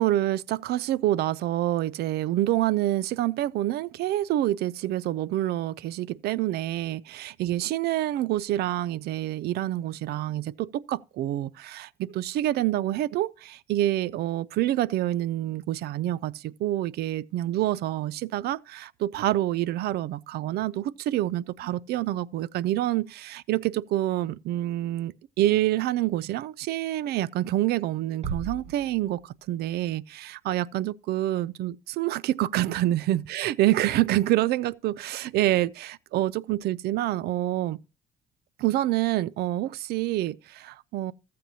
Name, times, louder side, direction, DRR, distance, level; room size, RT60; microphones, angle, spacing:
voice 1, 0.0-37.8 38.6-41.1, right 14 dB, 70° right, 0.5 m, -27 dB
Bass drum, 28.2-29.6, right 5 dB, 40° right, 1.6 m, -37 dB
15.0 x 7.6 x 2.7 m
cardioid pair, 110°, 17 cm